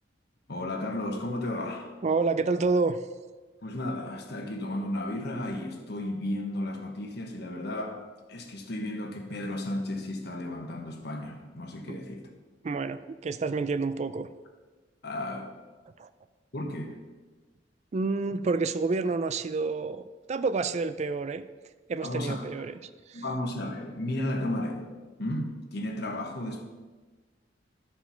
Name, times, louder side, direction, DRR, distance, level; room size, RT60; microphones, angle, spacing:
voice 1, 0.5-1.9 3.6-8.0 8.3-12.3 15.0-15.5 16.5-16.9 22.0-22.4 23.1-24.9 25.2-26.6, left 1 dB, 60° left, 3 dB, 1.3 m, -33 dB
voice 2, 2.0-3.0 11.9-12.0 12.6-14.3 16.0-16.1 17.9-21.4 21.9-23.2, right 4 dB, 35° right, 12 dB, 0.3 m, -29 dB
12.5 x 4.5 x 5.7 m, 1.3 s
head